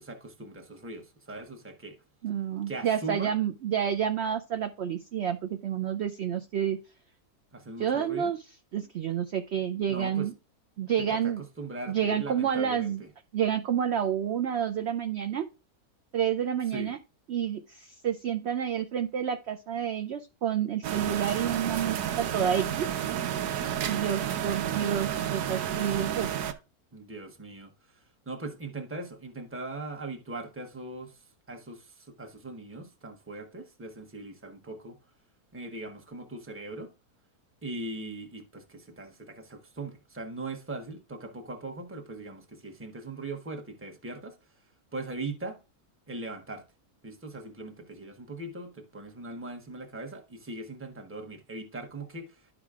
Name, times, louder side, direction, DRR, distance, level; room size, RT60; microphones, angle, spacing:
voice 1, 0.0-2.0 2.7-3.3 7.5-8.3 9.9-10.3 11.0-13.1 16.7-16.9 26.9-35.0 35.5-36.9 37.6-44.4 44.9-45.6 46.1-46.6 47.0-52.5, right 2 dB, 10° right, 0.8 m, -40 dB
voice 2, 2.2-6.8 7.8-8.4 8.7-10.3 10.8-11.4 11.9-13.0 13.3-15.5 16.1-17.0 17.3-22.8 23.8-26.3, right 9 dB, 70° right, 0.6 m, -29 dB
sound 1, 20.8-26.5, right 10 dB, 85° right, 1.2 m, -31 dB
12.0 x 4.9 x 2.4 m
omnidirectional pair, 1.7 m